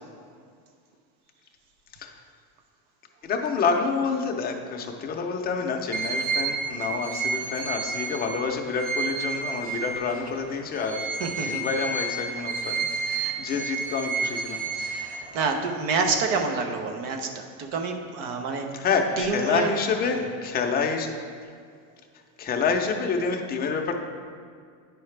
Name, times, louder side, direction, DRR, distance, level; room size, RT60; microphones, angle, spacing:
voice 1, 3.2-11.1 11.4-15.0 18.7-21.1 22.4-24.0, left 5 dB, 20° left, 2 dB, 0.6 m, -28 dB
sound 1, 5.9-10.3 10.7-15.6, right 4 dB, 20° right, 0.6 m, -30 dB
voice 2, 11.2-11.6 13.1-13.6 14.8-18.7 19.2-19.7 20.1-20.2, right 4 dB, 65° right, 4 dB, 1.0 m, -28 dB
9.8 x 4.8 x 3.3 m, 2.1 s
supercardioid pair, 140°, 43 cm